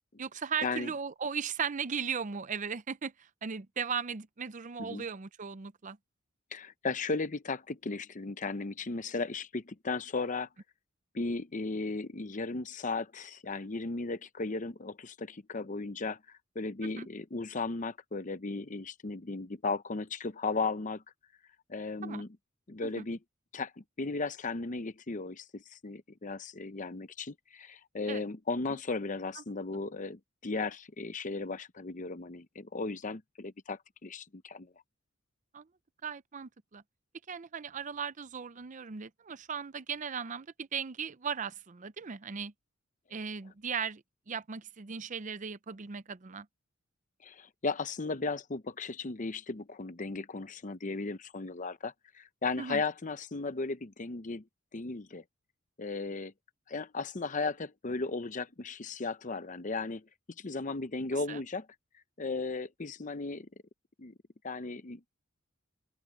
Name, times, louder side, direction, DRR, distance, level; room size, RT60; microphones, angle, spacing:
voice 1, 0.2-6.0 16.8-17.1 22.0-22.2 22.8-23.1 28.1-28.2 28.7-28.8 29.4-29.5 35.5-35.7 36.0-36.8 37.3-42.5 43.1-46.5 52.6-52.8 61.3-61.4, right 6 dB, 35° right, 0.6 m, -37 dB
voice 2, 6.5-10.5 11.1-21.0 21.7-22.3 22.7-23.2 23.5-34.7 47.2-54.4 54.7-55.2 55.8-56.3 56.7-60.1 60.4-61.7 62.2-63.5 64.0-64.1 64.4-65.1, left 3 dB, 40° left, 0.8 m, -36 dB
open air
head